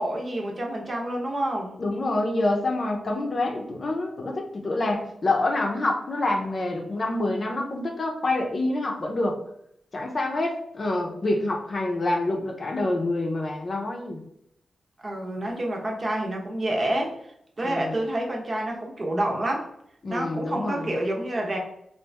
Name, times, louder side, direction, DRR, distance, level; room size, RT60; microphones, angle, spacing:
voice 1, 0.0-1.7 15.0-17.1 17.6-19.7 20.1-21.6, right 1 dB, 40° right, 0 dB, 0.8 m, -28 dB
voice 2, 1.8-9.4 9.9-14.2 17.6-18.0 20.0-20.9, left 2 dB, 45° left, 2 dB, 0.7 m, -27 dB
2.9 x 2.6 x 3.3 m, 0.73 s
cardioid pair, 85°, 0 cm